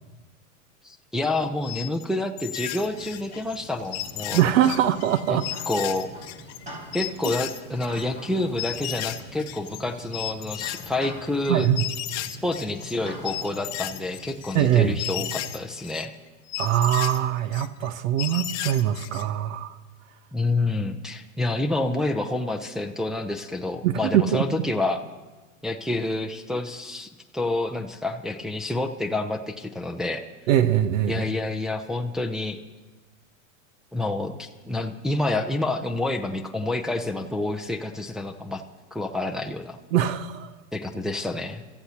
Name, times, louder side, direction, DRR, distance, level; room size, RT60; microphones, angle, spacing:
voice 1, 0.8-4.5 5.3-6.1 6.9-11.7 12.4-16.1 20.3-25.0 25.6-30.2 31.1-32.6 33.9-38.6 38.9-39.8 40.7-41.6, left 2 dB, ahead, 3 dB, 0.6 m, -28 dB
sound 1, 1.6-2.0 2.4-3.6 3.9-6.6 6.9-8.0 8.6-9.8 10.1-13.0 13.2-16.1 16.5-17.9 18.2-19.3, left 14 dB, 40° left, 1.0 m, -34 dB
sound 2, 2.7-15.6, right 1 dB, 20° right, 5.1 m, -44 dB
voice 2, 4.3-5.5 11.5-11.9 14.5-15.0 16.6-19.8 23.8-24.6 30.5-31.3 39.9-40.6, right 11 dB, 70° right, 12 dB, 0.9 m, -22 dB
28.0 x 14.0 x 2.9 m, 1.2 s
hypercardioid pair, 115°, 40 cm